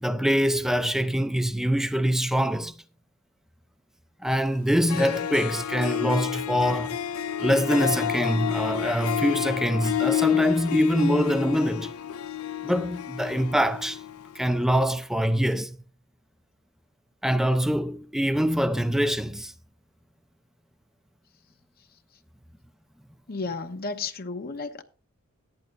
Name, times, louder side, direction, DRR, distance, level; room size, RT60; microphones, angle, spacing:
voice 1, 0.0-2.7 4.2-7.0 7.4-11.9 12.6-14.0 14.4-15.8 17.2-19.5, equal, ahead, 0.5 m, -24 dB
Harp, 4.6-4.7 4.9-14.4, left 10 dB, 85° left, 0.6 m, -30 dB
voice 2, 23.3-24.8, left 4 dB, 45° left, 0.9 m, -33 dB
15.0 x 10.5 x 2.5 m
head